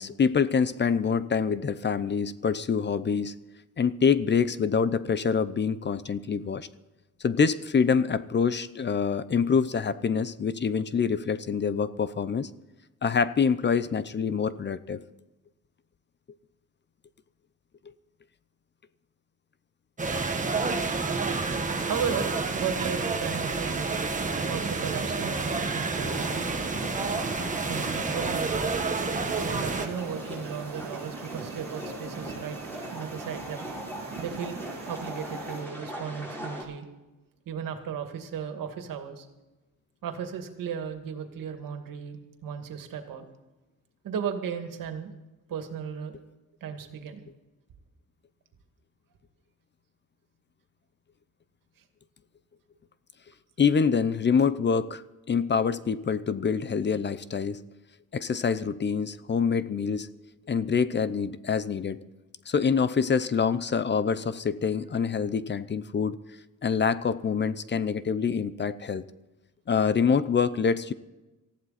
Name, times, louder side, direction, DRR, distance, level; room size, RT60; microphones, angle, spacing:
voice 1, 0.0-3.4 3.8-6.7 7.2-12.5 13.0-15.0 53.6-55.0 55.3-57.6 58.1-60.1 60.5-62.0 62.5-66.2 66.6-69.0 69.7-70.9, left 6 dB, 35° left, 15 dB, 0.7 m, -26 dB
sound 1, 20.0-29.9, right 4 dB, 25° right, 1.6 m, -29 dB
voice 2, 21.5-23.9 24.5-26.4 27.4-28.6 29.4-33.7 34.2-34.6 34.9-36.9 37.5-39.3 40.0-43.3 44.0-45.1 45.5-46.1 46.6-47.2, right 7 dB, 80° right, 6 dB, 2.3 m, -35 dB
sound 2, 24.6-35.7, right 5 dB, 55° right, 2.4 m, -44 dB
sound 3, 25.9-36.6, equal, 5° left, 5.5 m, -40 dB
19.0 x 15.0 x 4.2 m, 1.1 s
cardioid pair, 130°, 33 cm